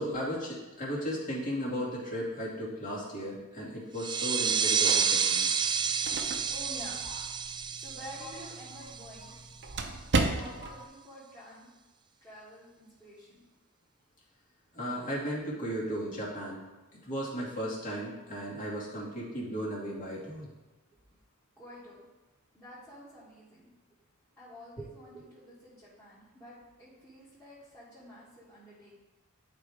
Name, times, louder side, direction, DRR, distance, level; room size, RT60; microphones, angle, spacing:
voice 1, 0.0-5.5 10.6-10.7 14.7-16.6 17.0-20.5 24.8-24.9, equal, 40° left, -6 dB, 2.4 m, -35 dB
sound 1, 4.0-9.3, right 6 dB, 20° right, 0.3 m, -30 dB
sound 2, 5.6-10.9, right 3 dB, 55° right, 0.8 m, -35 dB
voice 2, 6.5-7.0 7.7-9.3 10.2-11.7 12.2-13.4 21.6-22.0 22.5-23.7 24.4-29.0, equal, 10° left, -11 dB, 2.1 m, -49 dB
11.5 x 4.8 x 3.6 m, 1.1 s
head